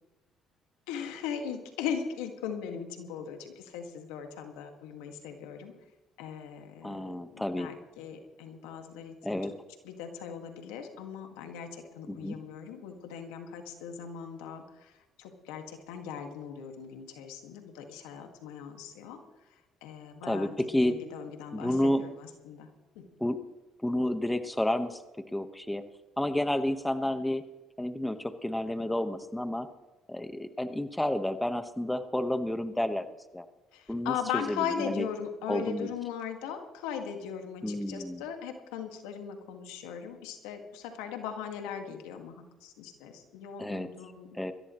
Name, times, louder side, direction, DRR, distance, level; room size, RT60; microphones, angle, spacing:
voice 1, 0.9-5.7 6.2-9.5 9.8-19.2 19.8-22.7 23.0-23.1 33.7-44.4, left 7 dB, 85° left, 5 dB, 2.0 m, -39 dB
voice 2, 6.8-7.7 9.2-9.5 12.1-12.3 20.2-21.0 21.5-22.0 23.2-23.4 23.8-25.0 25.3-25.8 26.2-27.4 27.8-29.7 30.1-33.0 33.3-33.5 33.9-35.1 35.5-35.9 37.6-38.2 43.6-43.9 44.4-44.5, left 1 dB, 10° left, 9 dB, 1.3 m, -30 dB
21.5 x 15.0 x 3.2 m, 1.0 s
supercardioid pair, 65°, 0 cm